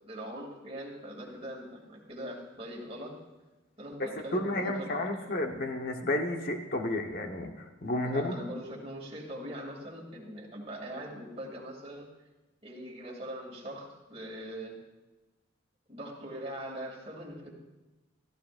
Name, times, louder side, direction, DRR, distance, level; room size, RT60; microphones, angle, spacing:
voice 1, 0.1-3.2 3.8-5.3 8.0-12.1 12.6-14.8 15.9-17.5, right 1 dB, 30° right, -2 dB, 2.7 m, -41 dB
voice 2, 4.0-8.4, left 1 dB, 50° left, 4 dB, 1.2 m, -32 dB
16.5 x 14.5 x 2.6 m, 1.1 s
head